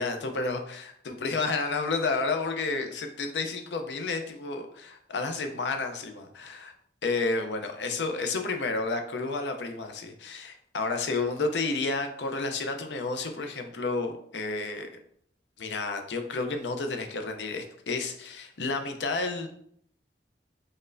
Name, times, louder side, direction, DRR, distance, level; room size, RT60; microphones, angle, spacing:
voice 1, 0.0-6.7 7.0-14.9 15.6-19.5, left 3 dB, 80° left, 6 dB, 0.5 m, -31 dB
4.2 x 3.2 x 2.5 m, 0.68 s
head